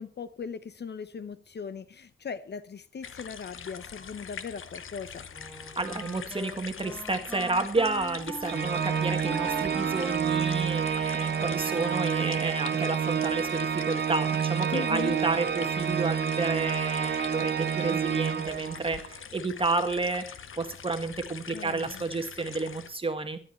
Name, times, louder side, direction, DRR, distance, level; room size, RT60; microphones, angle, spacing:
voice 1, 0.0-5.3 14.7-15.2 21.5-22.0, left 6 dB, 60° left, 0.8 m, -38 dB
sound 1, 3.0-22.9, left 7 dB, 90° left, 1.0 m, -44 dB
Wind instrument woodwind instrument, 5.3-12.6, right 2 dB, ahead, 3.1 m, -40 dB
voice 2, 5.7-20.2 20.5-23.4, right 3 dB, 25° right, 1.6 m, -31 dB
Organ, 8.5-19.1, right 8 dB, 55° right, 0.7 m, -29 dB
14.5 x 11.5 x 4.4 m
wide cardioid pair, 110°, 20 cm